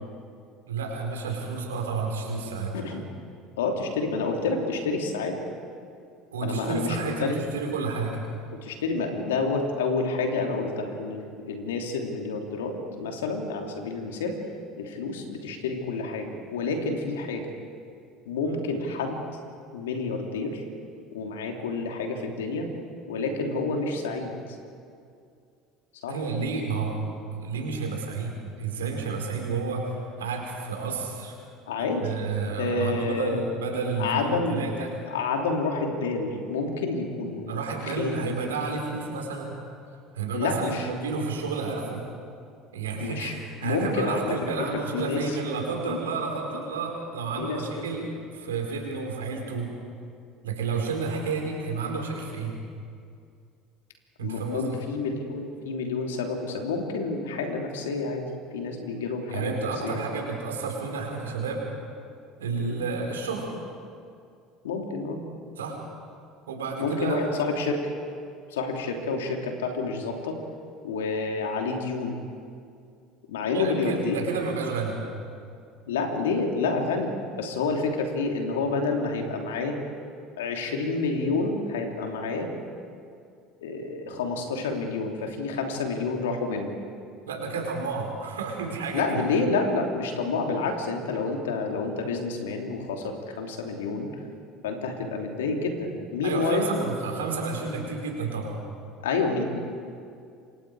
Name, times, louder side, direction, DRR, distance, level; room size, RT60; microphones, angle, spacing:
voice 1, 0.6-2.7 6.3-8.2 18.4-18.5 26.1-31.3 31.8-34.9 37.5-39.5 40.1-42.0 42.7-49.7 50.4-52.5 54.2-54.7 59.3-61.6 62.4-63.5 65.6-65.8 66.5-67.2 73.5-74.9 87.3-89.2 96.2-98.5, right 4 dB, 85° right, 1 dB, 4.6 m, -31 dB
voice 2, 2.5-3.0 3.6-5.4 6.4-7.4 8.5-14.4 14.8-17.5 18.2-19.2 19.7-20.6 21.1-22.7 23.1-24.6 26.0-26.2 31.7-32.1 32.6-33.4 34.0-34.7 35.0-38.3 40.3-40.9 43.0-43.3 43.6-44.3 44.7-45.4 45.8-46.0 47.4-47.9 54.2-58.3 58.5-59.5 59.8-60.0 62.6-62.8 64.6-65.2 66.8-67.8 68.5-70.4 70.8-72.2 73.3-74.2 75.9-79.9 80.4-82.5 83.6-86.7 88.9-94.1 94.6-96.7 99.0-99.6, left 3 dB, 80° left, 2 dB, 3.0 m, -29 dB
28.0 x 25.0 x 4.9 m, 2.4 s
hypercardioid pair, 70°, 0 cm